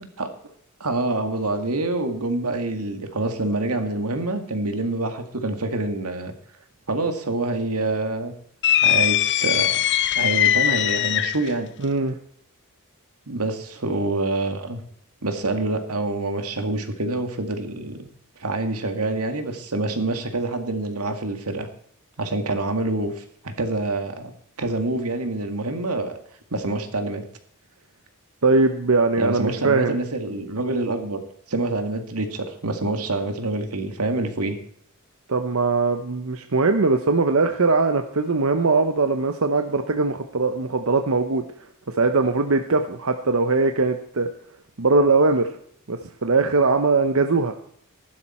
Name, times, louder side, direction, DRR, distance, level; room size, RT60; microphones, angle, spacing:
voice 1, 0.8-6.3 6.9-8.3 8.8-9.8 10.2-11.7 13.3-14.8 15.2-18.0 18.4-21.7 22.2-24.3 24.6-26.1 26.5-27.2 29.2-31.2 31.5-34.6, right 2 dB, 90° right, 6 dB, 2.1 m, -26 dB
sound 1, 8.6-11.5, left 11 dB, 55° left, 0.6 m, -20 dB
voice 2, 11.8-12.2 28.4-30.0 35.3-41.4 41.9-44.3 44.8-45.5 45.9-47.5, right 3 dB, 65° right, 7 dB, 0.9 m, -21 dB
15.5 x 12.0 x 4.4 m, 0.65 s
head